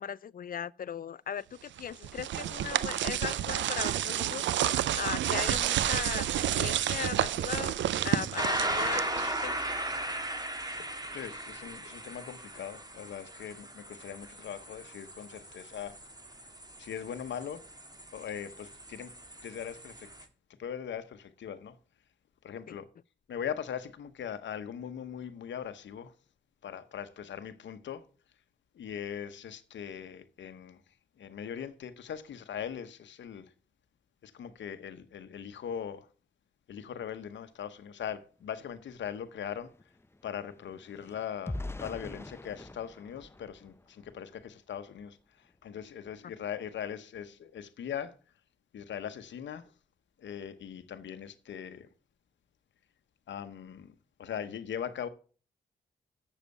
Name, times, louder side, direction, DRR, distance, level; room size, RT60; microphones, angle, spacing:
voice 1, 0.0-7.7 8.0-9.5 22.7-22.8, left 8 dB, 50° left, 0.4 m, -38 dB
sound 1, 1.8-9.6, right 11 dB, 90° right, 0.5 m, -30 dB
sound 2, 8.4-20.2, right 1 dB, 20° right, 1.8 m, -37 dB
voice 2, 11.1-15.9 16.8-17.6 18.1-19.1 19.4-20.1 20.6-21.8 22.4-22.8 23.3-26.1 26.6-28.0 28.8-30.8 31.2-33.5 34.2-36.1 36.7-39.7 40.2-45.2 45.6-48.2 48.7-49.7 50.2-51.9 53.3-53.9 54.2-55.1, left 8 dB, 85° left, 0.9 m, -40 dB
sound 3, 38.5-38.6 38.9-44.4 44.9-45.1 45.5-45.7, left 2 dB, 15° left, 0.6 m, -44 dB
7.3 x 7.0 x 6.5 m
cardioid pair, 50°, 18 cm